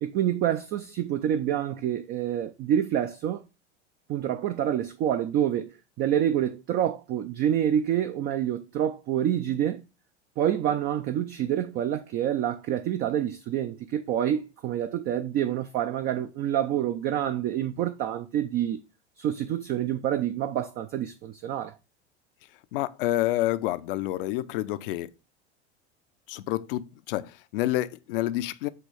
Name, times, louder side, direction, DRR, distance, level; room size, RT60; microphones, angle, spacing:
voice 1, 0.0-3.4 4.1-9.8 10.4-18.8 19.2-21.8, right 10 dB, 30° right, 0.4 m, -27 dB
voice 2, 22.7-25.1 26.3-28.7, left 15 dB, 55° left, 0.5 m, -28 dB
7.7 x 3.1 x 4.8 m
figure-of-eight pair, 80°, 34 cm